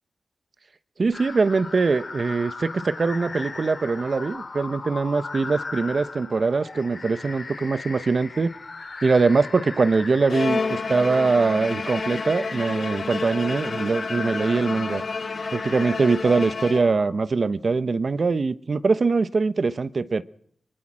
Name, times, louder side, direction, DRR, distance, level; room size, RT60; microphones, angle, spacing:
voice 1, 1.0-8.5 9.0-15.0 15.5-20.2, right 4 dB, 55° right, 14 dB, 0.9 m, -22 dB
sound 1, 1.1-16.3, left 3 dB, 55° left, 3.7 m, -38 dB
Bowed string instrument, 10.3-17.3, left 4 dB, 75° left, 3.5 m, -30 dB
23.5 x 23.0 x 6.3 m, 0.63 s
wide cardioid pair, 80°, 0 cm